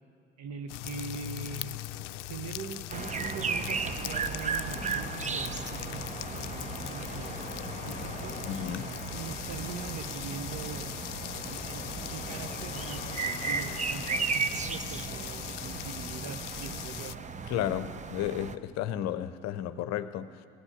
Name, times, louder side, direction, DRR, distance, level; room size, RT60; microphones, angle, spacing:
voice 1, 0.4-1.8 2.3-7.6 7.8-8.4 9.1-11.0 11.4-17.2, right 5 dB, 50° right, 9 dB, 1.3 m, -42 dB
sound 1, 0.7-17.2, left 15 dB, 80° left, 0.5 m, -40 dB
sound 2, 2.9-18.6, right 5 dB, 20° right, 0.7 m, -36 dB
sound 3, 3.5-14.7, left 4 dB, 20° left, 1.4 m, -47 dB
voice 2, 8.4-8.9 17.5-20.5, left 11 dB, 50° left, 12 dB, 0.8 m, -33 dB
16.5 x 9.9 x 8.0 m, 2.4 s
hypercardioid pair, 70°, 35 cm